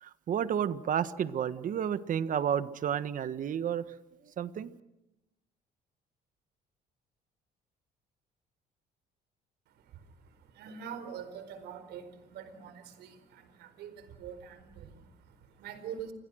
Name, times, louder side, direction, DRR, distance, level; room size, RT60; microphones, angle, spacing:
voice 1, 0.0-3.8 4.4-4.7, right 8 dB, 50° right, 13 dB, 1.5 m, -31 dB
voice 2, 9.7-16.1, right 8 dB, 80° right, 10 dB, 4.6 m, -45 dB
29.5 x 25.5 x 6.4 m, 0.92 s
cardioid pair, 110°, 17 cm